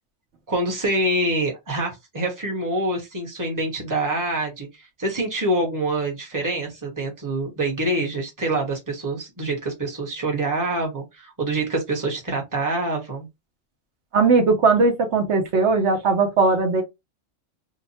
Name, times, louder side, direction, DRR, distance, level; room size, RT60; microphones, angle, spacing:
voice 1, 0.5-13.3, right 2 dB, 15° right, 0.9 m, -26 dB
voice 2, 14.1-16.8, right 4 dB, 70° right, 1.1 m, -19 dB
2.8 x 2.1 x 4.1 m
omnidirectional pair, 1.3 m